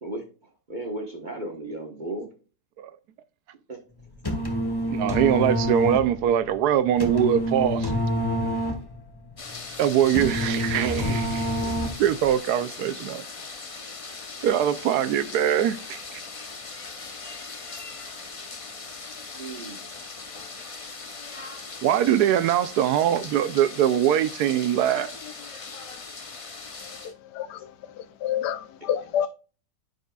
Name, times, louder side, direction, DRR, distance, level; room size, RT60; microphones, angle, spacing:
voice 1, 0.0-2.3 3.7-3.8 17.9-18.5 19.0-19.9, right 2 dB, 35° right, 1.0 m, -37 dB
sound 1, 4.0-12.3, equal, 15° left, 0.9 m, -27 dB
voice 2, 4.9-7.9 9.8-13.2 14.4-16.0 21.8-25.2, right 10 dB, 75° right, 1.0 m, -23 dB
sound 2, 9.4-27.1, left 4 dB, 55° left, 0.3 m, -39 dB
voice 3, 27.0-27.6 28.2-29.3, left 10 dB, 75° left, 1.2 m, -28 dB
9.4 x 5.1 x 2.3 m
omnidirectional pair, 1.9 m